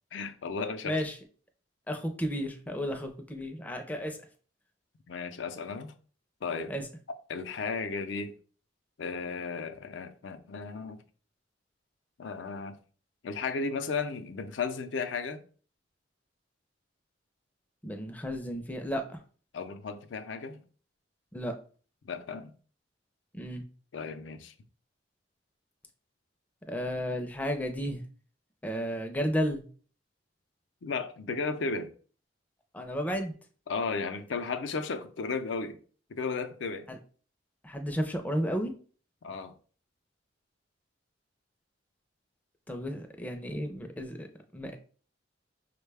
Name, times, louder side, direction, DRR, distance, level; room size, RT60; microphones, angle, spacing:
voice 1, 0.1-1.0 5.1-5.9 6.4-6.7 7.3-8.3 9.0-11.0 12.2-12.8 13.2-15.4 19.5-20.6 22.0-22.5 23.9-24.5 30.8-31.9 33.7-35.8 36.1-36.9 39.2-39.5, left 4 dB, 85° left, 0.5 m, -34 dB
voice 2, 0.8-1.2 1.9-4.2 6.7-6.9 17.8-19.2 21.3-21.5 23.3-23.6 26.7-28.0 28.6-29.6 32.7-33.3 36.9-37.0 37.6-38.7 42.7-44.3 44.5-44.8, equal, 10° left, 0.4 m, -33 dB
5.3 x 2.2 x 3.3 m
head